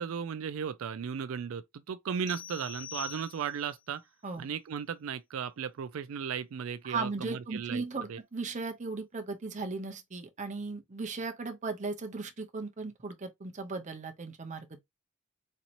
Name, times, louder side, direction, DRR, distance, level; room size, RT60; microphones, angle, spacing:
voice 1, 0.0-4.0 4.4-7.8 8.1-8.2, right 7 dB, 85° right, 0.4 m, -36 dB
sound 1, 2.3-3.8, left 9 dB, 85° left, 1.1 m, -44 dB
voice 2, 6.8-14.8, right 3 dB, 35° right, 0.7 m, -37 dB
4.2 x 2.8 x 2.5 m
head